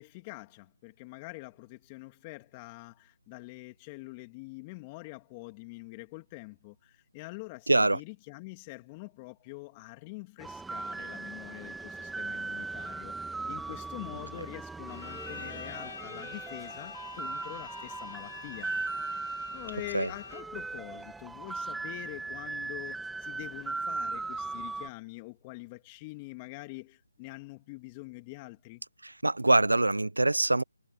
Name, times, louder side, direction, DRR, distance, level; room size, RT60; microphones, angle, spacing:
voice 1, 0.0-18.7 19.5-28.8, left 25 dB, 20° left, 3.0 m, -45 dB
voice 2, 7.7-8.0 19.9-20.1 29.0-30.6, right 2 dB, 90° right, 0.8 m, -24 dB
sound 1, 10.4-24.9, right 3 dB, 5° right, 2.2 m, -38 dB
Bowed string instrument, 14.9-20.7, left 4 dB, 60° left, 4.0 m, -46 dB
figure-of-eight pair, 155°, 0 cm